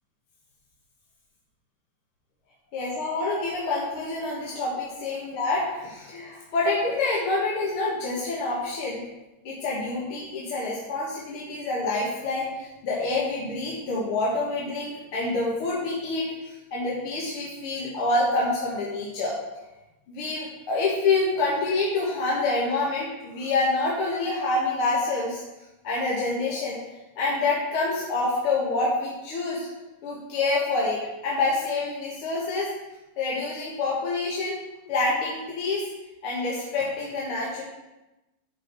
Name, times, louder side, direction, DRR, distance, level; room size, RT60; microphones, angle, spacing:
voice 1, 2.7-9.0 9.4-16.3 16.7-19.3 20.1-25.4 25.8-26.8 27.2-29.7 30.0-32.7 33.2-34.6 34.9-35.9 36.2-37.6, left 3 dB, 55° left, -5 dB, 1.7 m, -27 dB
11.0 x 4.5 x 4.4 m, 1.0 s
omnidirectional pair, 3.7 m